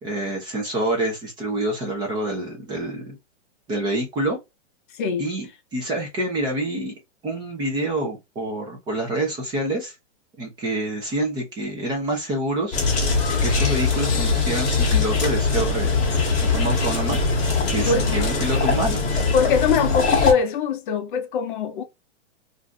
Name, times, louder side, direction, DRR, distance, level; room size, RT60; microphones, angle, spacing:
voice 1, 0.0-3.2 3.7-4.4 5.2-6.9 7.2-9.9 10.4-12.8 13.4-17.2 17.7-19.3, right 1 dB, 15° right, 0.5 m, -27 dB
voice 2, 4.9-5.3 17.9-18.2 19.3-21.8, left 6 dB, 45° left, 0.5 m, -22 dB
sound 1, 12.7-20.3, left 4 dB, 20° left, 1.0 m, -21 dB
2.5 x 2.3 x 3.7 m
hypercardioid pair, 155°, 35 cm